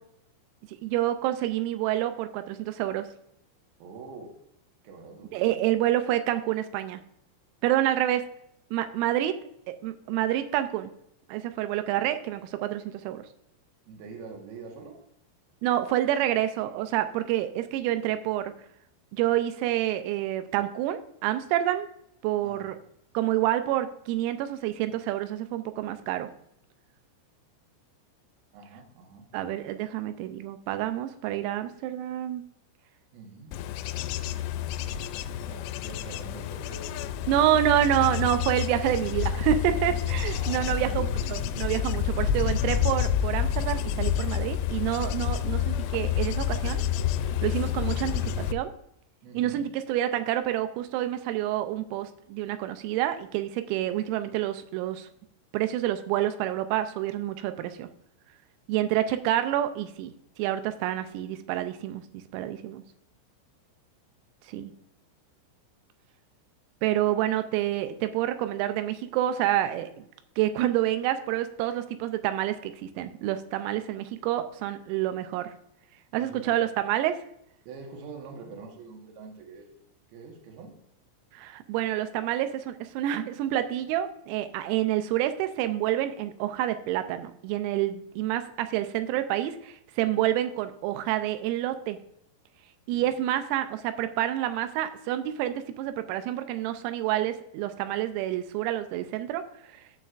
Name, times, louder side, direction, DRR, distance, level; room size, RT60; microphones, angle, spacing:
voice 1, 0.7-3.1 5.3-7.0 7.6-8.2 8.7-9.4 9.7-10.9 11.3-13.3 15.6-18.5 19.1-21.9 22.2-22.8 23.1-26.3 29.3-32.4 37.3-46.8 47.4-48.7 49.3-55.1 55.5-57.9 58.7-62.8 64.5-64.7 66.8-70.1 70.4-75.5 76.1-77.2 81.3-92.0 92.9-99.4, right 12 dB, 90° right, 9 dB, 3.4 m, -28 dB
voice 2, 3.8-4.3 4.8-5.6 13.9-15.0 22.4-22.7 28.5-29.3 33.1-33.5 35.4-37.3 40.2-40.8 49.2-49.7 76.2-76.5 77.7-79.7 80.1-80.8 92.9-93.0, right 4 dB, 65° right, 1 dB, 2.8 m, -45 dB
Bird / Insect / Wind, 33.5-48.5, left 9 dB, 85° left, 3.2 m, -29 dB
14.0 x 6.4 x 2.5 m, 0.75 s
omnidirectional pair, 6.0 m